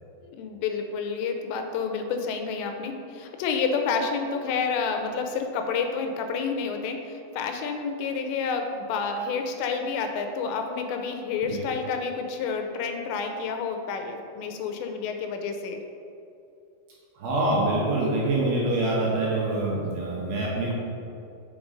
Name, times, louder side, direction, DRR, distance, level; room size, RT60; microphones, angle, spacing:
voice 1, 0.2-15.8, left 5 dB, 85° left, 4 dB, 2.8 m, -29 dB
voice 2, 17.2-20.7, right 2 dB, 65° right, -5 dB, 2.8 m, -25 dB
6.1 x 5.8 x 5.1 m, 2.6 s
omnidirectional pair, 5.1 m